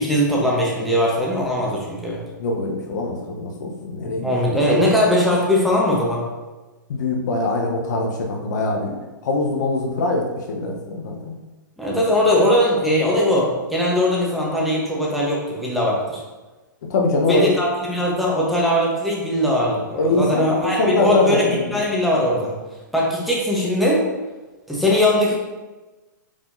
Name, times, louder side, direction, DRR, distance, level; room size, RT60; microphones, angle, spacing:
voice 1, 0.0-2.2 4.0-6.3 11.8-16.2 17.3-22.5 22.9-24.0 24.7-25.3, left 1 dB, ahead, -5 dB, 1.1 m, -20 dB
voice 2, 2.4-4.3 6.9-8.9 9.2-11.3 11.9-12.0 16.9-17.5 20.0-21.7, left 2 dB, 60° left, 1 dB, 0.9 m, -22 dB
5.0 x 3.5 x 2.7 m, 1.2 s
hypercardioid pair, 120°, 11 cm